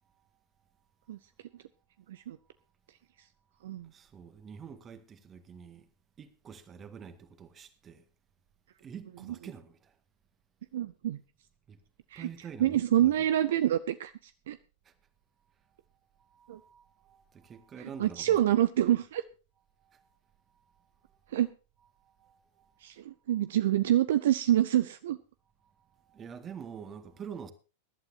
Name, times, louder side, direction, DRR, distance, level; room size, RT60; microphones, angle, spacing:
voice 1, 3.8-5.9 6.2-8.1 8.8-9.9 11.7-11.8 12.2-13.3 14.9-15.0 16.2-18.6 19.8-20.1 21.0-21.4 22.0-22.7 25.9-27.5, right 7 dB, 25° right, 1.8 m, -47 dB
voice 2, 10.7-11.2 12.1-12.3 12.6-14.6 16.5-16.6 17.8-19.2 21.3-21.5 22.8-25.2, right 12 dB, 60° right, 0.6 m, -27 dB
22.0 x 11.5 x 2.7 m
figure-of-eight pair, 90°, 0 cm